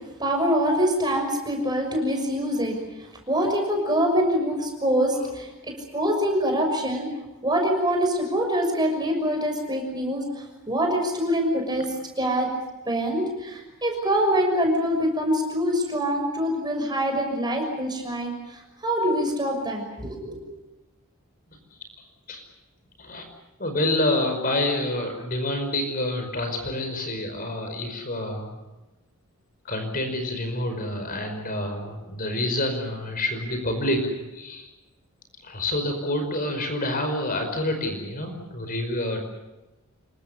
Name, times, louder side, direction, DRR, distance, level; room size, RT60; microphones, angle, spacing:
voice 1, 0.2-2.8 3.3-7.1 7.4-12.5 12.9-20.4, equal, 20° right, 3 dB, 6.2 m, -25 dB
voice 2, 23.6-28.6 29.6-34.7 35.4-39.2, left 1 dB, 40° left, 5 dB, 5.2 m, -28 dB
27.5 x 24.0 x 6.9 m, 1.0 s
head